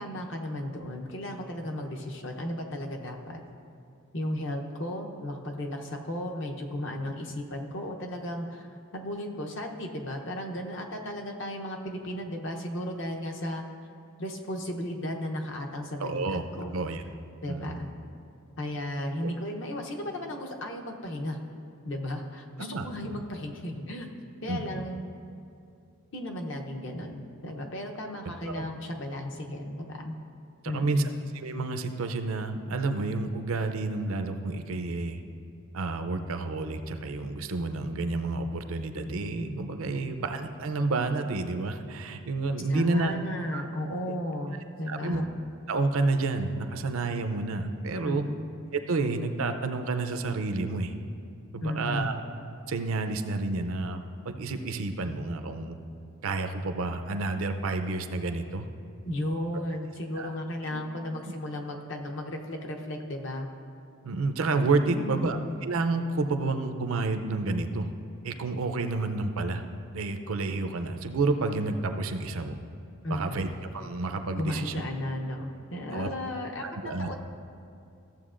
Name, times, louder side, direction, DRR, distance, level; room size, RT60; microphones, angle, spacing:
voice 1, 0.0-3.4 4.1-13.6 14.2-16.2 16.6-16.7 17.4-17.9 18.6-21.4 21.8-24.1 24.4-25.1 26.1-30.1 30.6-31.1 39.9-40.2 42.7-45.3 48.0-48.4 51.6-52.1 59.1-63.5 64.9-65.4 73.0-73.5 74.4-76.6 77.0-77.2, left 1 dB, 55° left, 2 dB, 0.8 m, -34 dB
voice 2, 16.0-16.4 16.7-17.0 17.5-17.8 19.2-19.3 22.6-22.8 24.5-24.8 28.4-28.6 30.6-31.0 31.3-35.2 35.7-43.1 43.5-43.6 44.9-45.2 45.7-48.3 48.7-50.9 51.5-52.2 52.7-55.8 56.2-58.7 60.2-60.3 60.7-60.8 64.0-67.9 68.2-69.6 69.9-72.6 73.1-73.5 73.7-74.7 75.9-76.1 76.6-77.2, right 3 dB, 75° right, 7 dB, 0.5 m, -30 dB
14.0 x 7.4 x 2.5 m, 2.5 s
head